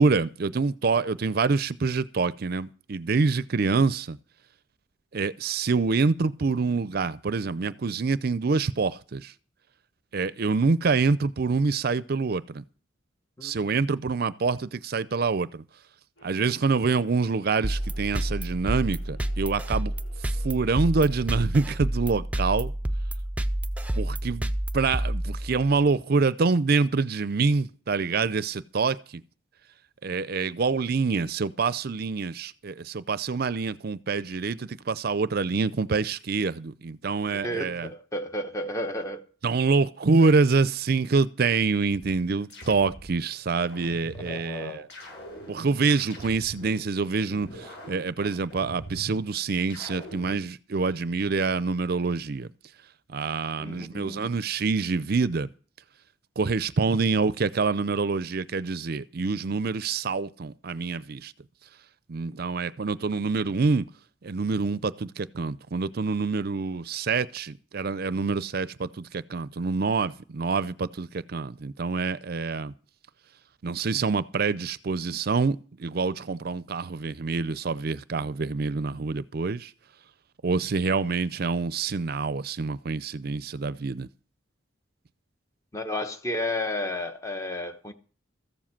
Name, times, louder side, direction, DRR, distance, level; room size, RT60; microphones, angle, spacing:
voice 1, 0.0-4.2 5.1-9.3 10.1-12.6 13.4-15.6 16.2-19.9 20.4-22.7 23.9-29.2 30.0-37.9 39.4-44.9 45.5-52.5 53.1-55.5 56.4-61.3 62.1-63.9 64.2-72.7 73.6-79.7 80.4-84.1, right 4 dB, 55° right, 0.5 m, -26 dB
sound 1, 16.2-21.2, left 2 dB, 90° left, 6.1 m, -54 dB
sound 2, 17.6-25.8, right 1 dB, 5° right, 0.6 m, -29 dB
voice 2, 37.3-39.2 44.2-44.9 53.6-54.3 85.7-87.9, left 1 dB, 15° left, 1.1 m, -32 dB
sound 3, 41.9-43.2 43.7-44.4 44.9-46.8 47.3-49.2 49.7-50.4, right 1 dB, 60° left, 7.9 m, -43 dB
14.5 x 7.5 x 7.3 m
head